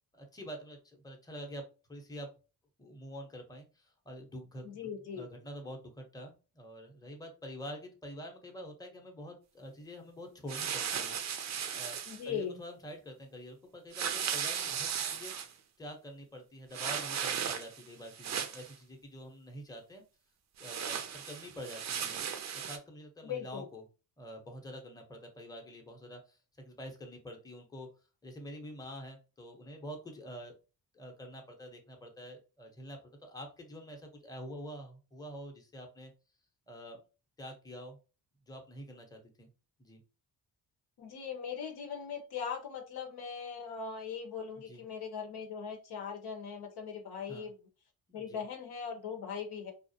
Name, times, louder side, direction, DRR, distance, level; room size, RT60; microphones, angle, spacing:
voice 1, 0.1-2.3 2.8-11.2 11.7-12.0 12.2-15.3 15.8-20.0 20.6-22.2 22.6-23.8 24.2-27.9 28.2-30.5 30.9-36.1 36.7-37.0 37.4-38.0 38.5-39.5 39.8-40.0 44.7-44.8 47.3-47.5 48.1-48.4, equal, 10° left, 2 dB, 0.7 m, -47 dB
voice 2, 4.6-5.3 12.1-12.6 23.2-23.7 41.0-47.6 48.1-49.7, left 7 dB, 75° left, 4 dB, 0.8 m, -40 dB
sound 1, 10.5-12.2 13.9-15.5 16.7-17.8 18.1-18.7 20.6-22.8, right 8 dB, 45° right, 0.5 m, -36 dB
2.4 x 2.1 x 2.7 m, 0.33 s
supercardioid pair, 65°, 38 cm